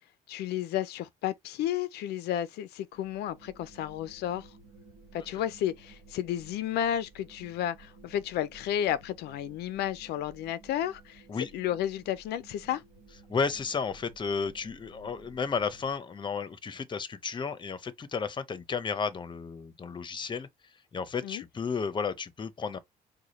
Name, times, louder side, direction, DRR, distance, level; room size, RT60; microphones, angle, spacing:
voice 1, 0.3-4.5 5.1-11.2 11.5-12.8 21.2-21.4, left 11 dB, 75° left, 0.5 m, -32 dB
sound 1, 2.9-16.0, right 3 dB, 50° right, 1.4 m, -55 dB
voice 2, 13.3-20.5 20.9-22.8, left 5 dB, 30° left, 0.7 m, -33 dB
4.8 x 2.2 x 4.1 m
cardioid pair, 110°, 17 cm